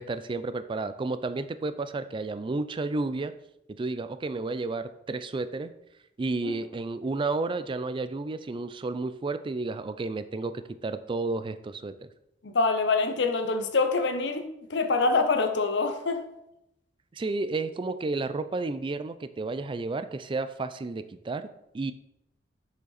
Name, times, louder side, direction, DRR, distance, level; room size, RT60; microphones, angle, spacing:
voice 1, 0.0-3.3 3.8-5.7 6.2-10.5 10.8-11.9 17.1-21.5 21.7-21.9, right 3 dB, 30° right, 11 dB, 0.4 m, -31 dB
voice 2, 12.4-16.3, left 3 dB, 70° left, 7 dB, 0.8 m, -25 dB
6.7 x 5.1 x 4.1 m, 0.82 s
head